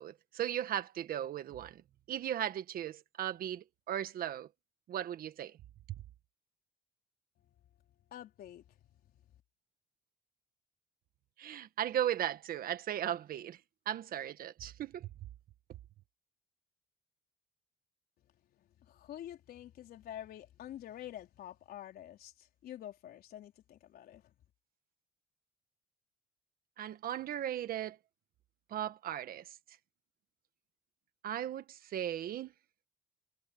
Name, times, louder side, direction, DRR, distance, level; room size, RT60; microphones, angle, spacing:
voice 1, 0.0-1.8 2.1-4.5 4.9-5.6 11.4-13.6 13.8-15.1 26.8-28.0 28.7-29.6 31.2-32.5, right 11 dB, 60° right, 1.5 m, -37 dB
voice 2, 8.1-8.6 18.8-24.3, left 11 dB, 65° left, 4.3 m, -48 dB
cardioid pair, 110°, 17 cm